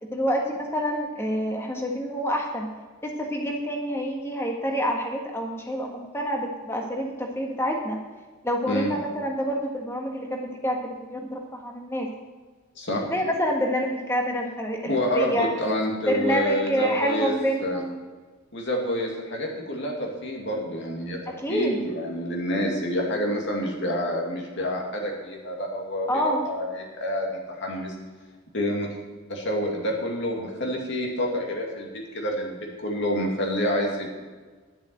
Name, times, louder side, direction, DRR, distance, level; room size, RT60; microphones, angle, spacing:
voice 1, 0.1-2.7 3.0-8.0 8.4-12.1 13.1-15.5 16.1-18.0 21.3-21.8 26.1-26.4, equal, 10° left, 1 dB, 1.6 m, -27 dB
voice 2, 8.7-9.0 12.8-13.0 14.9-17.3 17.6-17.8 18.5-27.9 28.5-28.9 29.3-34.1, equal, 55° left, 0 dB, 2.5 m, -28 dB
11.0 x 7.1 x 7.9 m, 1.4 s
head